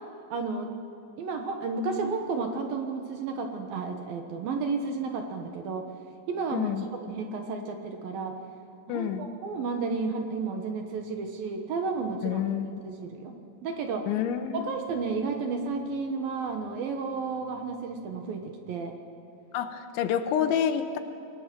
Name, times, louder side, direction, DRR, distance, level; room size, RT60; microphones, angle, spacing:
voice 1, 0.3-0.7 1.2-5.9 6.3-8.4 8.9-12.4 12.8-13.3 13.6-14.1 14.6-18.9, right 4 dB, 65° right, 4 dB, 2.7 m, -32 dB
voice 2, 6.5-6.9 8.9-9.3 12.2-12.7 14.1-14.8 19.5-21.0, left 9 dB, 85° left, 8 dB, 3.4 m, -28 dB
27.0 x 20.0 x 6.1 m, 2.7 s
omnidirectional pair, 5.3 m